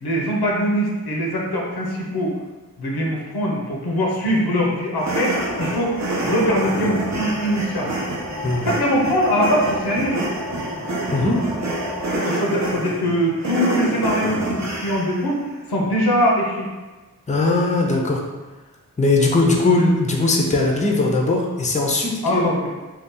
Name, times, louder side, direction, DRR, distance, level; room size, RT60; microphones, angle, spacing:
voice 1, 0.0-2.3 2.8-5.9 6.2-7.9 8.6-10.2 12.2-15.4 15.7-16.7 22.2-22.7, equal, 80° left, -2 dB, 0.7 m, -22 dB
sound 1, 5.0-15.2, right 1 dB, 45° right, 0.7 m, -27 dB
sound 2, 5.3-12.1, left 1 dB, 85° right, 0.9 m, -33 dB
voice 2, 11.1-11.5 17.3-18.2 19.0-22.4, left 2 dB, 20° left, -1 dB, 0.6 m, -19 dB
2.7 x 2.3 x 3.6 m, 1.2 s
cardioid pair, 45°, 38 cm